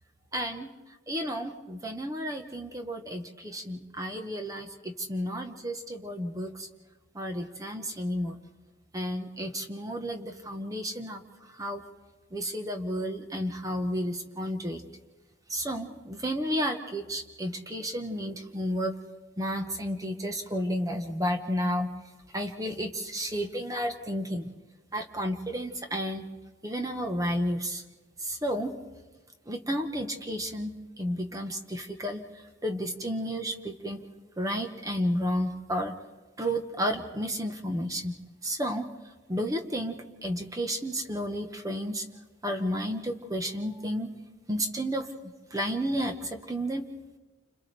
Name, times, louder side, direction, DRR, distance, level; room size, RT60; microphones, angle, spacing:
voice 1, 0.3-0.7 1.1-6.7 7.1-8.4 8.9-11.2 11.5-11.8 12.3-14.8 15.5-18.9 19.4-21.9 22.3-24.5 24.9-26.3 26.6-27.8 28.2-28.7 29.5-32.2 32.6-34.0 34.4-35.9 36.4-38.1 38.4-38.9 39.3-42.0 42.4-44.1 44.5-45.1 45.5-46.8, equal, 15° right, 4 dB, 1.1 m, -32 dB
29.5 x 26.5 x 3.4 m, 1.2 s
head